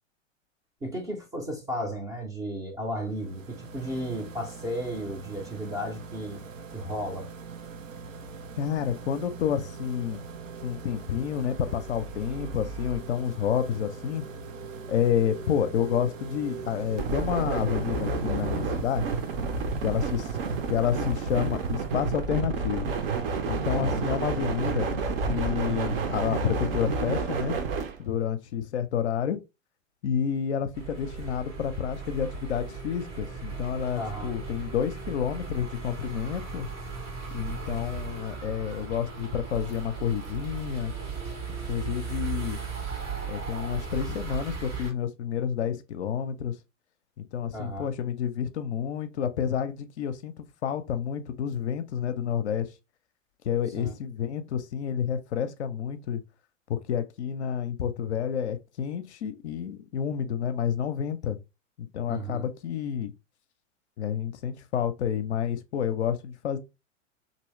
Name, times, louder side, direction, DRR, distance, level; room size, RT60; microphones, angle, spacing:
voice 1, 0.8-6.4 6.7-7.3 23.7-24.0 34.0-34.3 47.5-47.9 53.7-53.9 62.1-62.5, equal, 10° right, 0.4 m, -34 dB
sound 1, 3.0-22.4, right 4 dB, 85° right, 0.5 m, -43 dB
voice 2, 8.6-10.2 10.6-14.2 14.9-19.1 19.8-20.3 20.7-22.9 23.5-24.9 25.3-27.6 28.0-29.4 30.0-36.7 37.3-40.9 41.7-42.6 43.3-46.5 47.3-52.7 53.4-56.2 56.7-61.4 61.8-63.1 64.0-66.6, left 8 dB, 60° left, 0.5 m, -29 dB
sound 2, 9.1-28.0, right 4 dB, 50° right, 0.7 m, -32 dB
sound 3, 30.7-44.9, right 5 dB, 65° right, 1.7 m, -37 dB
3.0 x 2.7 x 2.9 m
figure-of-eight pair, 95°, 38 cm